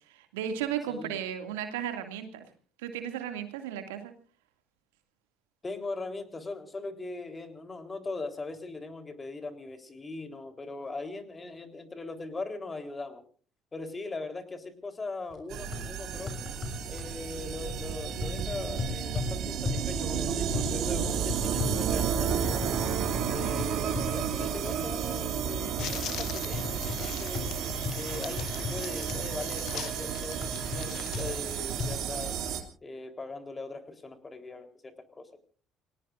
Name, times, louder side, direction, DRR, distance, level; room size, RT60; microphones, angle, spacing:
voice 1, 0.1-2.5 2.8-4.1, right 9 dB, 75° right, 6 dB, 2.3 m, -35 dB
voice 2, 0.9-1.3 5.6-13.2 13.7-16.5 16.9-22.7 23.3-27.6 28.0-30.4 30.7-32.4 32.8-35.4, left 3 dB, 25° left, 7 dB, 3.7 m, -40 dB
sound 1, 15.3-15.4 15.7-15.8 16.3-17.1 17.7-17.9 18.2-19.3 19.6-19.9 20.5-20.7 21.3-22.9 23.1-23.3 23.6-24.1 24.7-24.8 25.8-25.9 26.5-27.0 27.3-28.8 29.1-29.2 29.7-29.8 30.4-30.8 31.1-31.3 31.8-31.9, left 5 dB, 45° left, 6.5 m, -35 dB
sound 2, 15.5-32.6, right 7 dB, 60° right, 2.6 m, -32 dB
sound 3, 25.8-31.4, left 11 dB, 60° left, 1.8 m, -42 dB
29.5 x 19.0 x 2.6 m, 0.42 s
hypercardioid pair, 55°, 0 cm